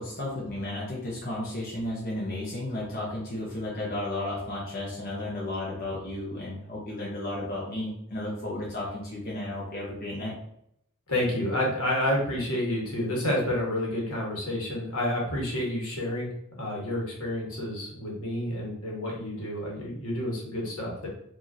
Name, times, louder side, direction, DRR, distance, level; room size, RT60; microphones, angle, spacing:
voice 1, 0.0-10.3, left 1 dB, 45° left, -5 dB, 0.9 m, -33 dB
voice 2, 11.1-16.3 16.6-21.1, left 1 dB, 70° left, -3 dB, 1.5 m, -29 dB
5.0 x 2.8 x 2.7 m, 0.75 s
head